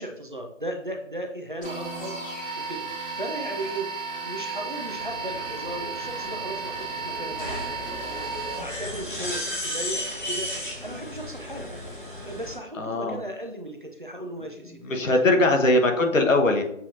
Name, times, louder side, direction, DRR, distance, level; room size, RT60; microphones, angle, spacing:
voice 1, 0.0-2.2 2.6-2.8 3.1-3.9 4.2-10.5 10.8-11.7 12.2-15.5, right 1 dB, 40° right, 2 dB, 0.5 m, -36 dB
sound 1, 1.6-9.0, right 4 dB, 15° left, 1.3 m, -34 dB
sound 2, 4.9-12.5, left 1 dB, 40° left, 1.2 m, -35 dB
voice 2, 12.8-13.2 14.8-16.6, left 2 dB, 75° left, 3 dB, 1.1 m, -21 dB
7.0 x 2.8 x 2.5 m, 0.75 s
figure-of-eight pair, 175°, 39 cm